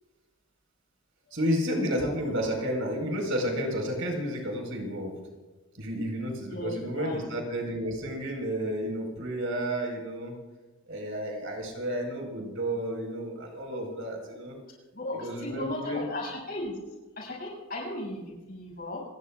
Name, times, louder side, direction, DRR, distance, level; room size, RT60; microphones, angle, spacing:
voice 1, 1.3-5.2 5.7-10.4 10.9-14.6 15.1-16.0, equal, 70° right, 1 dB, 4.6 m, -31 dB
voice 2, 6.4-7.2 14.9-16.7 17.2-19.0, left 1 dB, 45° left, -3 dB, 6.9 m, -36 dB
28.0 x 20.0 x 2.4 m, 1.2 s
head